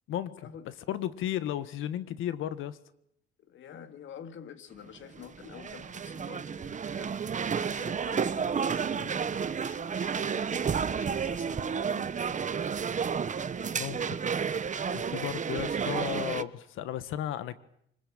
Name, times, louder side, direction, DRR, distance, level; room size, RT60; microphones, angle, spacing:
voice 1, 0.1-0.5 0.9-2.8 13.7-14.2 14.9-17.6, left 11 dB, 90° left, 14 dB, 1.7 m, -34 dB
voice 2, 3.4-7.2 7.5-10.5 10.9-12.4 14.9-15.2, left 9 dB, 75° left, 10 dB, 2.5 m, -48 dB
sound 1, 4.9-16.4, right 6 dB, 40° right, 1.1 m, -31 dB
sound 2, 8.2-15.3, right 10 dB, 75° right, 2.1 m, -54 dB
25.0 x 20.5 x 8.9 m, 0.71 s
cardioid pair, 90°, 20 cm